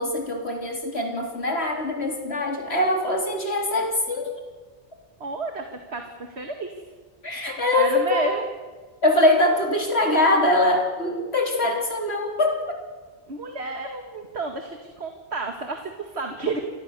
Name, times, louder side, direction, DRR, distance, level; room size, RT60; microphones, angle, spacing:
voice 1, 0.0-4.3 7.2-8.3 9.0-12.8, left 1 dB, 75° left, 2 dB, 4.0 m, -23 dB
voice 2, 5.2-6.0 6.4-6.7 7.7-8.5 13.3-16.6, right 3 dB, 80° right, 4 dB, 2.3 m, -31 dB
28.0 x 19.5 x 6.9 m, 1.4 s
omnidirectional pair, 1.1 m